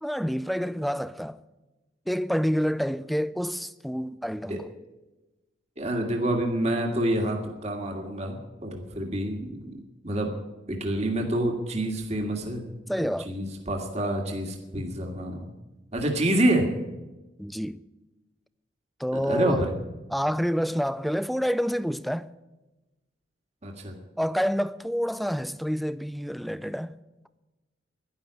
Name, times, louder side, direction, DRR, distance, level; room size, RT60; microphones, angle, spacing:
voice 1, 0.0-1.4 2.1-4.7 12.9-13.3 17.4-17.8 19.0-19.7 20.1-22.3 24.2-27.0, equal, ahead, 0.4 m, -28 dB
voice 2, 5.8-9.8 10.0-10.3 10.7-12.7 13.0-15.5 15.9-16.7 19.1-19.7 23.6-23.9, right 1 dB, 35° right, 1.9 m, -27 dB
11.5 x 11.0 x 9.4 m
head